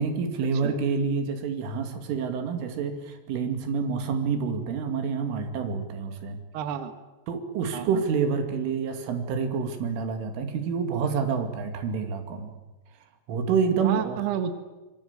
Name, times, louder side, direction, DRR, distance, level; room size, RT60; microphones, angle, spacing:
voice 1, 0.0-6.4 7.3-12.5 13.3-14.2, right 5 dB, 90° right, 7 dB, 5.0 m, -28 dB
voice 2, 6.5-7.0 7.7-8.0 13.8-14.5, right 9 dB, 65° right, 9 dB, 3.3 m, -30 dB
25.5 x 22.5 x 8.2 m, 1.1 s
omnidirectional pair, 5.5 m